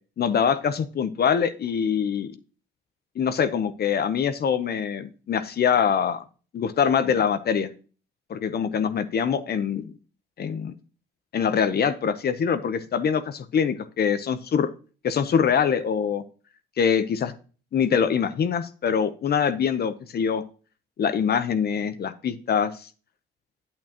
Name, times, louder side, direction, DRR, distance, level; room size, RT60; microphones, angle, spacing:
voice 1, 0.2-2.3 3.2-6.2 6.5-7.7 8.3-9.9 10.4-10.7 11.3-14.7 15.0-16.2 16.8-17.3 17.7-20.4 21.0-22.9, left 7 dB, 55° left, 11 dB, 0.9 m, -24 dB
8.7 x 8.6 x 2.9 m, 0.37 s
cardioid pair, 90°, 20 cm